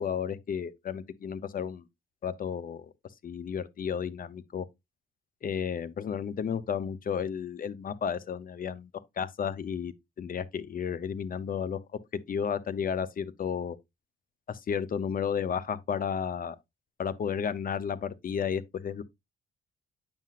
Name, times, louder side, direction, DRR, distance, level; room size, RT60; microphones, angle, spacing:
voice 1, 0.0-1.8 2.2-2.9 3.2-4.7 5.4-8.9 9.2-9.9 10.2-11.8 12.3-13.8 14.5-16.6 17.0-19.0, left 7 dB, 45° left, 0.8 m, -32 dB
8.8 x 5.8 x 2.5 m
cardioid pair, 90°, 20 cm